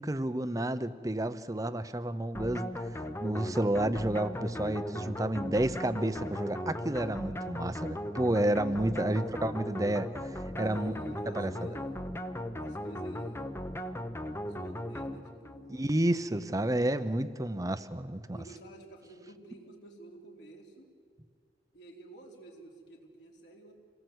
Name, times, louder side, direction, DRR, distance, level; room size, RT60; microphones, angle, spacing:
voice 1, 0.0-2.7 3.2-10.9 11.4-11.5 15.7-18.4, right 1 dB, 20° right, 12 dB, 0.7 m, -30 dB
sound 1, 2.3-15.7, equal, 15° left, 0.8 m, -37 dB
voice 2, 9.0-9.9 10.5-12.2 12.6-13.8 14.5-16.0 16.4-16.9 18.3-20.9 21.7-23.7, right 1 dB, 65° left, 0 dB, 3.7 m, -50 dB
26.5 x 19.0 x 8.0 m, 2.2 s
head